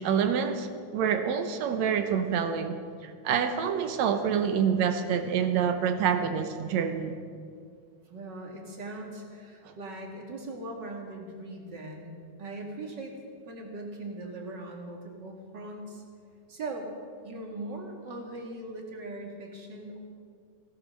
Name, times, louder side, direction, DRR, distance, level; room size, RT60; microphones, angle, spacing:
voice 1, 0.0-7.2 9.7-9.8, right 7 dB, 70° right, 8 dB, 1.9 m, -27 dB
voice 2, 8.1-13.1 13.5-16.0 16.5-16.9 17.2-20.0, right 2 dB, 40° right, 1 dB, 2.2 m, -40 dB
17.0 x 12.0 x 6.5 m, 2.2 s
omnidirectional pair, 3.6 m